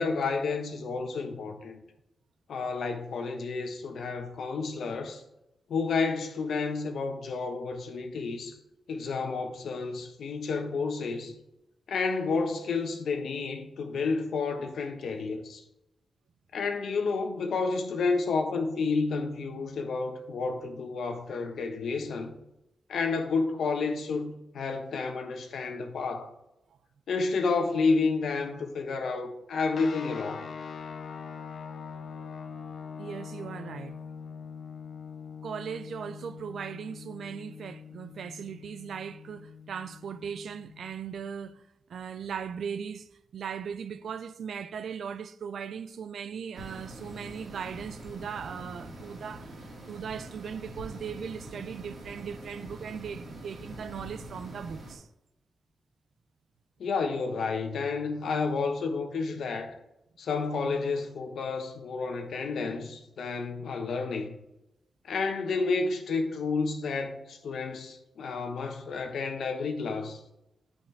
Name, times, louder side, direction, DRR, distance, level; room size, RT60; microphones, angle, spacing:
voice 1, 0.0-1.8 2.5-5.2 5.7-8.6 8.9-11.4 11.9-15.6 16.5-22.3 22.9-26.3 27.1-30.4 56.8-59.8 60.2-64.4 65.0-70.2, left 4 dB, 80° left, 1.1 m, -30 dB
sound 1, 29.7-40.9, left 6 dB, 60° left, 0.6 m, -43 dB
voice 2, 33.0-34.0 35.4-41.6 41.9-49.6 49.9-55.1, right 7 dB, 75° right, 0.4 m, -38 dB
sound 2, 46.5-54.9, right 1 dB, 55° right, 2.3 m, -44 dB
9.6 x 5.3 x 3.4 m
wide cardioid pair, 145°, 0 cm